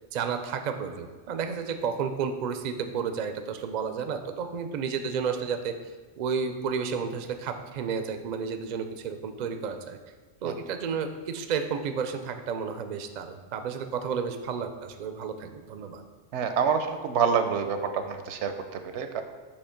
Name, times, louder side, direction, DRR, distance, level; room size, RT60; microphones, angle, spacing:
voice 1, 0.1-5.8 6.2-10.0 10.4-16.0, right 6 dB, 60° right, 7 dB, 0.4 m, -32 dB
voice 2, 16.3-19.2, right 6 dB, 85° right, 7 dB, 0.9 m, -27 dB
6.5 x 2.9 x 5.7 m, 1.4 s
omnidirectional pair, 1.2 m